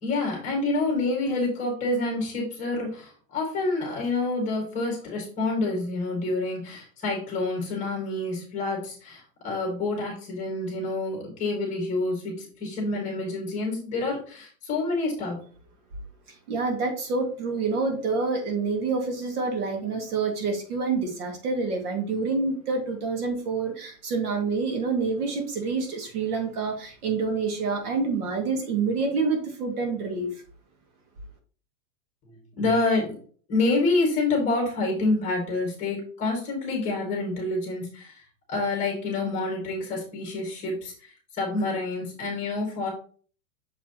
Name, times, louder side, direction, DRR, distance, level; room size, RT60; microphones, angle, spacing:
voice 1, 0.0-15.4 32.6-33.2 33.5-38.2 38.5-42.9, left 2 dB, 15° left, -1 dB, 2.0 m, -27 dB
voice 2, 16.5-30.3, right 4 dB, 70° right, 3 dB, 2.2 m, -27 dB
6.9 x 5.0 x 2.9 m, 0.42 s
supercardioid pair, 175°, 47 cm